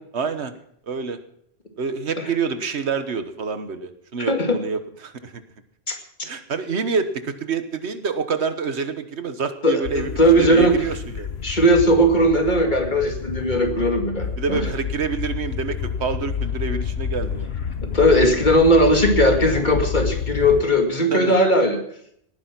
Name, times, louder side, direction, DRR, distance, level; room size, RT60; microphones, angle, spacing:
voice 1, 0.1-0.5 0.9-1.2 1.8-5.4 6.2-10.1 10.4-11.3 14.4-17.5 21.1-21.3, right 5 dB, 80° right, 10 dB, 1.5 m, -27 dB
voice 2, 4.2-4.6 5.9-6.0 9.6-10.8 11.4-14.6 17.8-21.8, equal, 45° left, 3 dB, 2.3 m, -18 dB
sound 1, 9.8-20.6, left 7 dB, 75° left, 1.1 m, -29 dB
18.5 x 10.0 x 6.0 m, 0.69 s
omnidirectional pair, 1.1 m